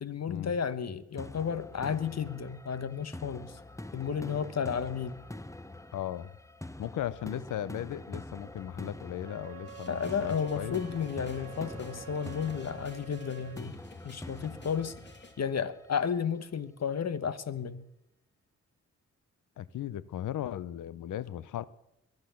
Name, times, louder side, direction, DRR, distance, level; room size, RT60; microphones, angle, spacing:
voice 1, 0.0-3.6 3.9-5.2 9.9-13.8 14.0-14.9 15.4-17.8, left 7 dB, 55° left, 1.2 m, -33 dB
sound 1, 1.2-16.1, left 1 dB, 10° left, 0.9 m, -45 dB
voice 2, 5.9-6.4 6.8-10.8 19.6-21.6, left 11 dB, 80° left, 0.6 m, -37 dB
Wind instrument woodwind instrument, 9.2-13.6, right 8 dB, 50° right, 0.9 m, -48 dB
sound 2, 9.7-15.3, left 2 dB, 35° left, 2.5 m, -52 dB
22.0 x 8.1 x 7.1 m
supercardioid pair, 45°, 30 cm